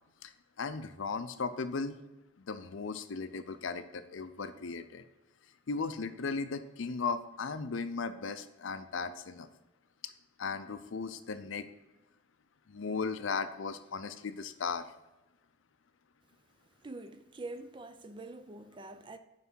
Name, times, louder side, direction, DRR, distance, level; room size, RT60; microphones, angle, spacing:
voice 1, 0.6-2.0 2.4-5.0 5.7-9.5 10.0-10.1 10.4-11.7 12.7-14.9, left 4 dB, 75° left, 0.5 m, -36 dB
voice 2, 16.8-19.2, right 2 dB, 25° right, 0.4 m, -45 dB
5.7 x 4.9 x 6.2 m
head